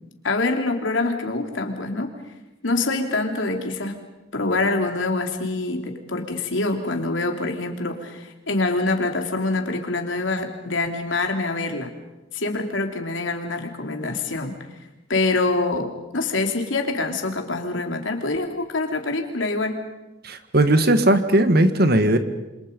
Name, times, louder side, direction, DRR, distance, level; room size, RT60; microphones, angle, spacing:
voice 1, 0.2-2.1 2.6-4.0 4.3-11.9 12.3-14.5 15.1-19.8, left 3 dB, 80° left, 3 dB, 3.1 m, -25 dB
voice 2, 20.2-22.2, right 1 dB, 55° right, 9 dB, 1.7 m, -18 dB
28.0 x 26.5 x 5.4 m, 1.0 s
head